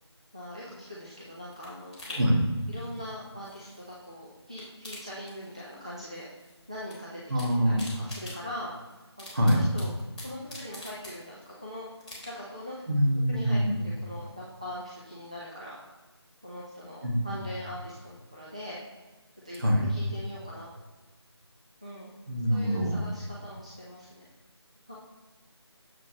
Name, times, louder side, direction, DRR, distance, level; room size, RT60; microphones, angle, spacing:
voice 1, 0.3-2.3 2.7-6.3 6.7-7.2 7.5-8.7 9.2-9.9 10.2-11.8 12.3-12.8 13.3-15.8 16.4-18.8 19.4-19.6 19.9-20.7 21.8-22.1 22.5-24.3 24.9-25.0, left 1 dB, 15° right, -7 dB, 0.4 m, -42 dB
sound 1, 0.8-4.1 4.4-5.9 6.1-7.0 7.2-11.6 12.0-12.6 13.0-13.1, left 1 dB, 15° left, 1.9 m, -46 dB
voice 2, 7.3-7.8 9.3-9.6 12.9-13.8 17.0-17.2 19.6-19.9 22.3-22.9, equal, 50° right, -3 dB, 1.9 m, -24 dB
7.4 x 6.1 x 3.0 m, 1.3 s
figure-of-eight pair, 165°, 15 cm